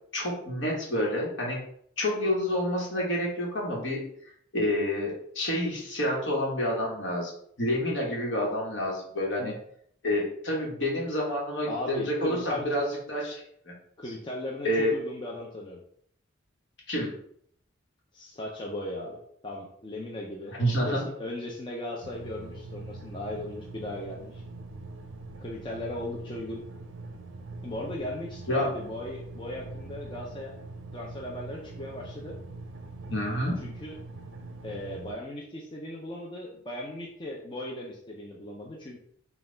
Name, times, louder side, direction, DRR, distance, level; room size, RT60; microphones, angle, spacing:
voice 1, 0.1-1.6 2.0-4.0 4.5-7.3 7.6-9.5 10.0-13.7 14.6-14.9 16.9-17.1 20.6-21.0 28.5-28.7 33.1-33.6, left 1 dB, 65° left, -2 dB, 1.2 m, -28 dB
voice 2, 11.7-12.7 14.0-15.8 18.1-20.6 20.8-24.4 25.4-26.6 27.6-30.5 30.9-32.4 33.6-34.0 34.6-39.0, left 1 dB, 25° left, -2 dB, 0.4 m, -37 dB
sound 1, 22.0-35.1, right 2 dB, 70° right, 0.5 m, -43 dB
4.0 x 2.3 x 3.7 m, 0.66 s
head